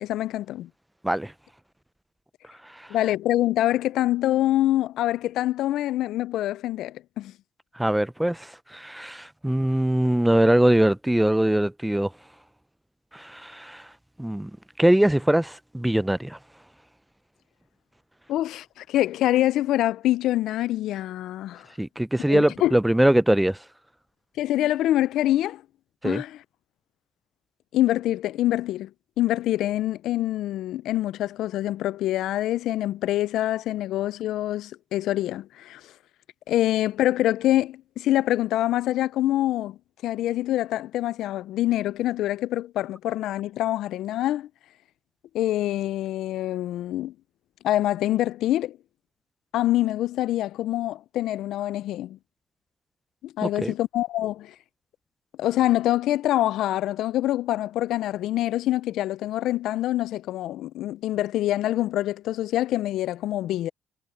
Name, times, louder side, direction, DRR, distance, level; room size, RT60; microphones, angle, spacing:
voice 1, 0.0-0.7 2.9-7.3 18.3-21.7 22.3-22.8 24.4-25.6 26.0-26.4 27.7-28.9 29.2-35.8 36.5-39.8 40.0-44.5 45.3-47.1 47.6-48.8 49.5-52.2 53.2-54.5 55.4-63.7, left 14 dB, 85° left, 0.3 m, -25 dB
voice 2, 7.8-12.1 13.1-13.8 14.2-14.5 14.8-16.4 21.8-23.6 26.0-26.2 53.4-53.7, right 1 dB, 5° right, 0.5 m, -22 dB
cardioid pair, 90°, 0 cm